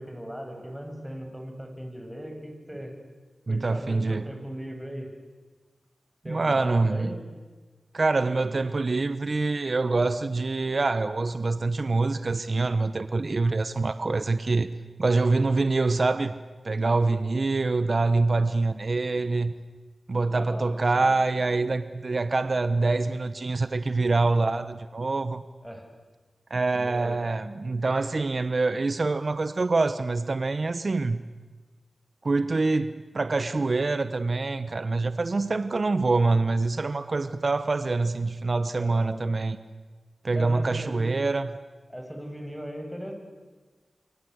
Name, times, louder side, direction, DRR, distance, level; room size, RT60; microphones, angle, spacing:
voice 1, 0.0-2.9 3.5-5.1 6.2-7.2 20.3-21.1 25.6-25.9 26.7-27.1 38.8-39.2 40.3-41.2 41.9-43.1, equal, ahead, 3 dB, 7.6 m, -38 dB
voice 2, 3.5-4.3 6.3-7.1 7.9-14.7 15.0-16.3 16.6-19.5 20.1-25.4 26.5-31.2 32.2-39.6 40.2-41.5, right 3 dB, 55° right, 12 dB, 1.1 m, -25 dB
29.5 x 23.0 x 8.2 m, 1.4 s
cardioid pair, 45°, 0 cm